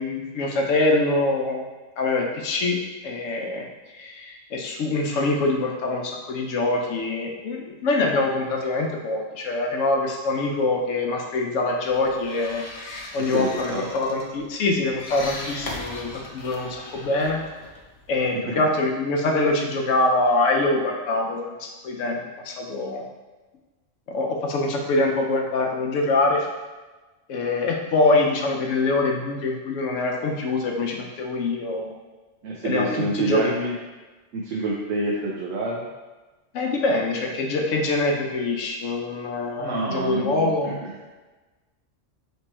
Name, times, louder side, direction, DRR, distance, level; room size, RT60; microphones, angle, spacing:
voice 1, 0.0-1.7 2.0-2.8 3.0-3.7 4.0-17.4 18.1-23.0 24.1-26.5 27.3-31.9 32.6-33.6 36.5-40.8, left 2 dB, 80° left, 1 dB, 1.0 m, -24 dB
sound 1, 11.9-18.3, left 2 dB, 55° left, 0.4 m, -39 dB
voice 2, 13.3-13.9 32.4-33.7 34.3-35.8 39.6-40.9, right 2 dB, 80° right, -4 dB, 1.0 m, -27 dB
3.3 x 3.1 x 4.3 m, 1.2 s
omnidirectional pair, 1.3 m